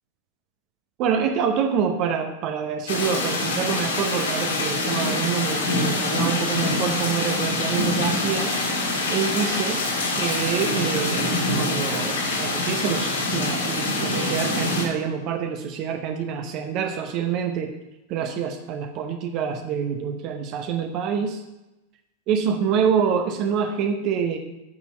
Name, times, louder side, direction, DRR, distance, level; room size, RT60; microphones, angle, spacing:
voice 1, 1.0-8.6 9.1-9.8 10.2-17.7 18.1-21.4 22.3-24.4, right 7 dB, 40° right, 5 dB, 0.8 m, -26 dB
sound 1, 2.9-14.8, left 2 dB, 65° left, 2.1 m, -25 dB
8.8 x 6.1 x 5.6 m, 0.98 s
figure-of-eight pair, 90°, 0 cm